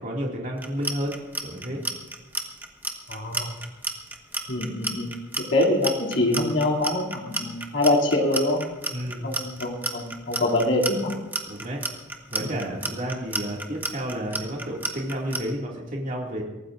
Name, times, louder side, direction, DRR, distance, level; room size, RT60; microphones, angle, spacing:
voice 1, 0.0-1.8 8.9-9.2 11.5-11.8 12.3-16.4, equal, 45° right, -2 dB, 2.4 m, -31 dB
Clock, 0.6-15.4, right 2 dB, 10° right, 1.3 m, -30 dB
voice 2, 3.1-3.5 4.5-5.2 5.5-8.6 9.2-11.1 12.4-12.6, left 1 dB, 80° left, -2 dB, 2.8 m, -24 dB
23.5 x 17.5 x 2.6 m, 1.2 s
head